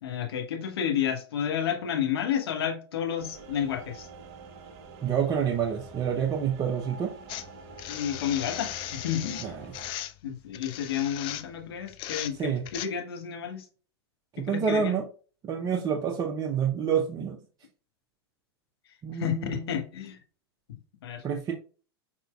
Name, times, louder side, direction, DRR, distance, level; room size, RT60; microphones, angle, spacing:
voice 1, 0.0-4.1 7.9-9.6 10.2-13.6 14.4-14.9 19.1-20.2 21.0-21.2, left 9 dB, 65° left, 1.2 m, -31 dB
sound 1, 3.2-9.9, right 3 dB, 50° right, 0.9 m, -46 dB
voice 2, 5.0-7.1 9.4-9.6 12.4-12.6 14.3-15.1 15.4-17.4 19.0-19.8 21.2-21.5, right 7 dB, 25° right, 0.6 m, -28 dB
sound 2, 7.3-12.9, left 13 dB, 40° left, 0.4 m, -38 dB
4.4 x 3.8 x 2.3 m
figure-of-eight pair, 90°, 14 cm